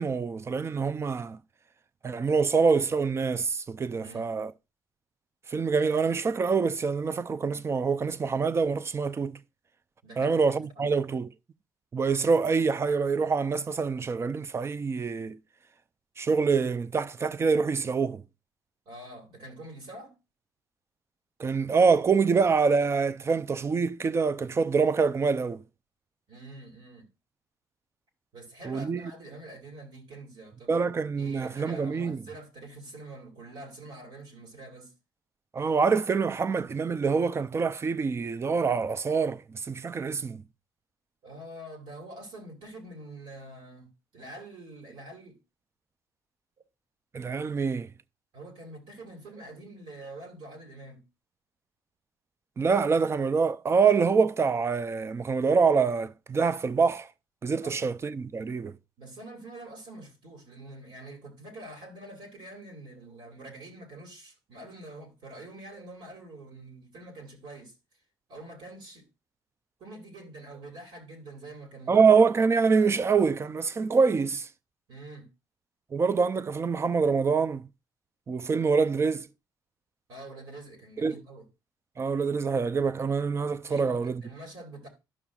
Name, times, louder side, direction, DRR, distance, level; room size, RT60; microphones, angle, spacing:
voice 1, 0.0-1.4 2.0-4.5 5.5-9.4 10.2-11.3 11.9-15.4 16.2-18.2 21.4-25.6 28.6-29.1 30.7-32.2 35.5-40.4 47.1-47.9 52.6-57.1 57.4-58.7 71.9-74.5 75.9-77.6 78.3-79.3 81.0-81.2 82.0-84.2, right 5 dB, 30° right, 0.4 m, -25 dB
voice 2, 4.0-4.3 10.0-10.4 10.8-10.9 18.9-20.2 26.3-27.1 28.3-30.8 31.1-34.9 41.2-45.4 48.3-51.0 57.6-57.9 59.0-67.7 68.3-69.0 69.8-72.0 74.9-75.3 80.1-81.5 83.7-84.9, right 2 dB, 75° right, 2.6 m, -45 dB
12.0 x 5.7 x 2.4 m
cardioid pair, 85°, 8 cm